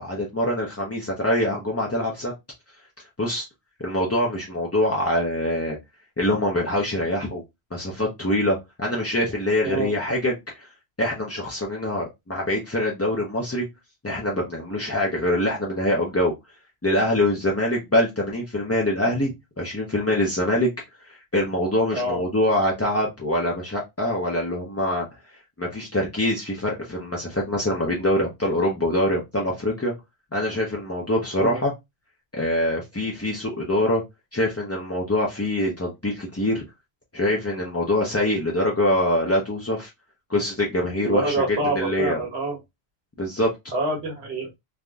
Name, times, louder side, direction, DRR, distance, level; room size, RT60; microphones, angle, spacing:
voice 1, 0.0-2.3 3.2-3.5 3.8-5.8 6.2-7.4 7.7-10.7 11.0-13.7 14.0-16.3 16.8-20.7 21.0-25.1 25.6-29.9 30.3-31.7 32.3-34.0 34.3-36.6 37.1-39.9 40.3-42.2 43.2-43.5, left 1 dB, 25° left, -2 dB, 0.3 m, -24 dB
voice 2, 41.0-42.6 43.7-44.5, right 2 dB, 75° right, 0 dB, 1.4 m, -26 dB
3.4 x 2.5 x 2.2 m, 0.20 s
omnidirectional pair, 1.1 m